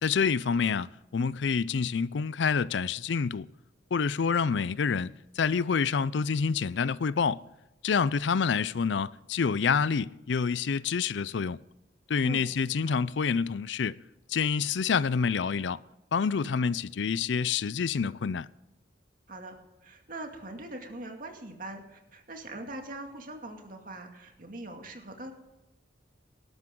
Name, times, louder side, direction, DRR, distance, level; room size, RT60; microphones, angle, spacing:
voice 1, 0.0-3.5 3.9-7.4 7.8-11.6 12.1-13.9 14.3-15.8 16.1-18.5, left 5 dB, 80° left, 0.5 m, -27 dB
voice 2, 19.8-25.3, right 1 dB, 50° right, 2.4 m, -42 dB
19.0 x 12.0 x 3.8 m
head